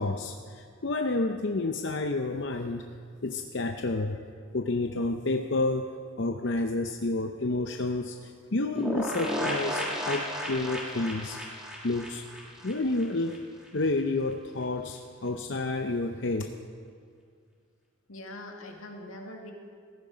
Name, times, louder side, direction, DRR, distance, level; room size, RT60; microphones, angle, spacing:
voice 1, 0.0-2.9 3.2-4.2 4.5-11.4 11.8-13.5 13.7-16.5, left 2 dB, 60° left, 5 dB, 0.7 m, -30 dB
sound 1, 8.8-13.4 13.6-13.7 14.0-14.1, equal, 5° right, 2.1 m, -33 dB
voice 2, 18.1-19.5, left 1 dB, 90° left, 1 dB, 2.3 m, -42 dB
17.5 x 15.0 x 5.1 m, 2.1 s
head